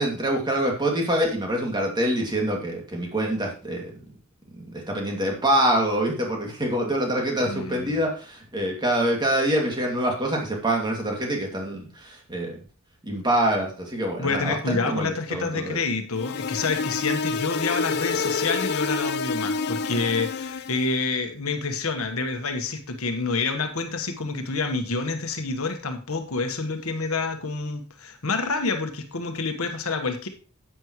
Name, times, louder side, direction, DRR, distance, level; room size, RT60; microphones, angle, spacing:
voice 1, 0.0-3.9 4.6-12.6 13.0-15.8, right 1 dB, 20° right, 0 dB, 2.5 m, -25 dB
voice 2, 7.4-8.0 14.2-30.3, left 3 dB, 70° left, 6 dB, 1.4 m, -28 dB
sound 1, 16.2-20.9, left 4 dB, 50° left, 0.5 m, -28 dB
11.0 x 8.8 x 3.1 m, 0.36 s
head